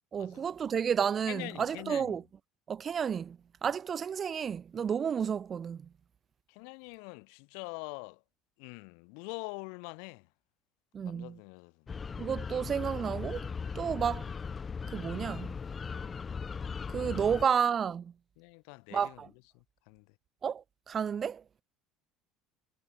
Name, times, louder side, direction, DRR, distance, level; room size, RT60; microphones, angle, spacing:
voice 1, 0.1-2.2 2.7-5.9 10.9-11.4 12.2-13.5 13.7-14.3 14.9-15.5 16.9-18.1 18.9-19.3 20.4-21.4, right 7 dB, 30° right, 0.5 m, -31 dB
voice 2, 1.3-2.2 6.5-8.2 8.6-10.3 11.0-11.9 17.2-17.3 18.4-20.1, left 40 dB or more, 80° left, 2.9 m, -44 dB
sound 1, 11.9-17.5, left 5 dB, 25° left, 1.6 m, -38 dB
cardioid pair, 125°, 0 cm